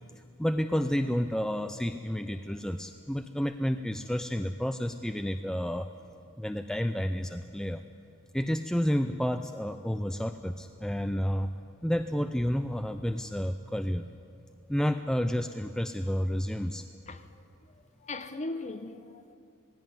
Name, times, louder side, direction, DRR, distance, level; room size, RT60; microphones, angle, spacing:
voice 1, 0.4-5.9 6.4-7.8 8.3-11.5 11.8-14.1 14.7-16.9, equal, 5° left, 0.4 m, -30 dB
voice 2, 18.0-19.3, left 2 dB, 30° left, 1.0 m, -38 dB
19.0 x 16.5 x 9.4 m
head